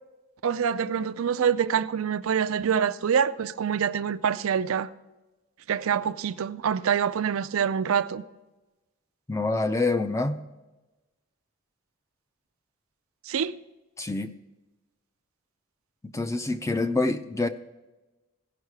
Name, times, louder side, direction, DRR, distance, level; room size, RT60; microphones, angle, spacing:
voice 1, 0.4-4.9 5.7-8.2 13.3-13.6, right 7 dB, 70° right, 0.4 m, -25 dB
voice 2, 9.3-10.4 14.0-14.3 16.0-17.5, left 2 dB, 15° left, 0.4 m, -26 dB
16.5 x 5.6 x 4.7 m
head